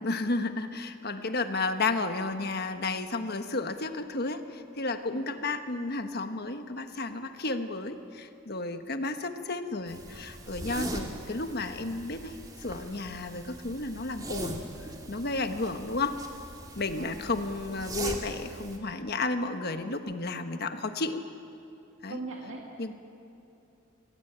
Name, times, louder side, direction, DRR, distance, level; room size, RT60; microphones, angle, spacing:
voice 1, 0.0-14.7 15.1-16.2 16.7-21.2 22.0-22.2 22.8-22.9, left 3 dB, 50° left, 7 dB, 1.4 m, -32 dB
sound 1, 9.9-18.8, right 2 dB, 20° right, 2.4 m, -41 dB
voice 2, 16.9-17.2 22.1-22.7, right 3 dB, 70° right, -1 dB, 2.1 m, -41 dB
26.0 x 18.5 x 8.9 m, 2.8 s
head